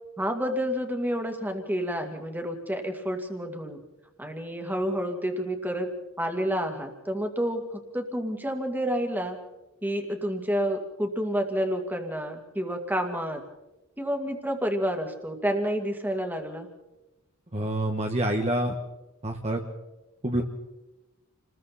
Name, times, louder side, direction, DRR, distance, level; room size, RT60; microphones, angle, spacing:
voice 1, 0.2-3.8 4.2-5.9 6.2-7.6 7.9-9.4 9.8-13.4 14.0-16.7, equal, 10° right, 4 dB, 2.4 m, -29 dB
voice 2, 17.5-18.7 19.2-19.6 20.2-20.4, right 1 dB, 30° right, 1 dB, 1.6 m, -27 dB
29.5 x 20.5 x 4.3 m, 1.0 s
head